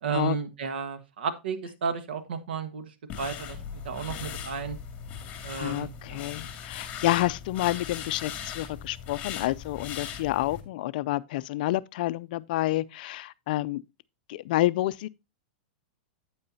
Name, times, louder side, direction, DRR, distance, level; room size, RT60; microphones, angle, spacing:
voice 1, 0.0-3.6 3.8-4.8 5.4-6.3, right 6 dB, 85° right, 1.5 m, -33 dB
sound 1, 3.1-10.6, left 8 dB, 30° left, 2.1 m, -39 dB
voice 2, 5.6-13.8 14.3-15.1, left 16 dB, 60° left, 0.4 m, -29 dB
8.7 x 8.5 x 2.7 m
supercardioid pair, 145°, 5 cm